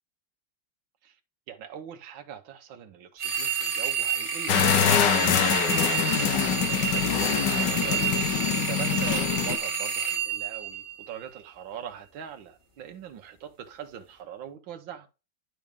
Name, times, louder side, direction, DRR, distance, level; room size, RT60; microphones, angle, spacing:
voice 1, 1.5-8.0 8.3-15.1, right 8 dB, 80° right, 1.8 m, -42 dB
sound 1, 3.2-11.4, right 6 dB, 15° right, 2.1 m, -29 dB
sound 2, 4.5-9.6, left 8 dB, 70° left, 1.5 m, -24 dB
10.5 x 6.2 x 3.6 m
omnidirectional pair, 2.1 m